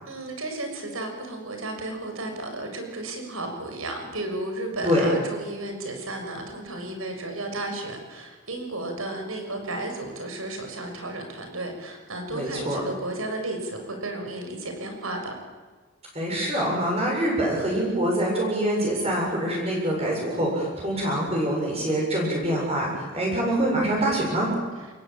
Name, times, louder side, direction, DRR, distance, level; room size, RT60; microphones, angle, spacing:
voice 1, 0.1-15.3, right 2 dB, 80° right, 4 dB, 6.7 m, -33 dB
voice 2, 12.3-12.8 16.1-24.5, right 1 dB, 30° right, -2 dB, 7.4 m, -25 dB
27.5 x 22.5 x 9.0 m, 1.4 s
head